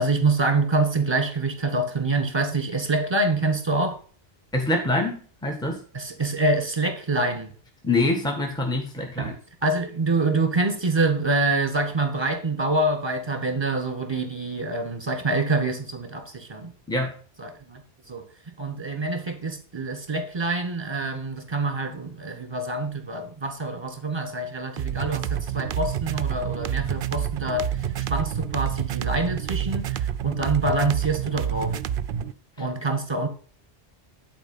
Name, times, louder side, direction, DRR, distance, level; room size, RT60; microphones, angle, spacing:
voice 1, 0.0-4.0 5.9-7.5 9.2-9.3 9.6-16.7 17.4-17.8 18.1-18.2 18.6-31.8 32.6-33.3, right 2 dB, 25° right, 1.7 m, -26 dB
voice 2, 4.5-5.8 7.8-9.3 16.9-17.1, left 2 dB, 5° left, 1.5 m, -25 dB
sound 1, 24.8-32.3, right 9 dB, 60° right, 0.7 m, -28 dB
10.5 x 4.6 x 5.4 m
omnidirectional pair, 1.1 m